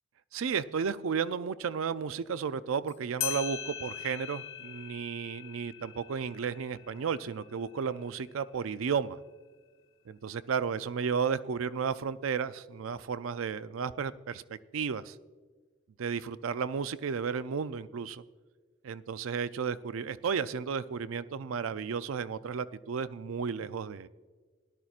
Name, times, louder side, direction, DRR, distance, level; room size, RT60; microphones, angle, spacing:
voice 1, 0.3-9.2 10.1-15.2 16.0-18.2 18.8-24.1, right 6 dB, 80° right, 15 dB, 0.4 m, -33 dB
sound 1, 2.9-3.0 3.2-8.3, left 10 dB, 75° left, 1.1 m, -41 dB
18.0 x 11.5 x 2.4 m, 1.5 s
head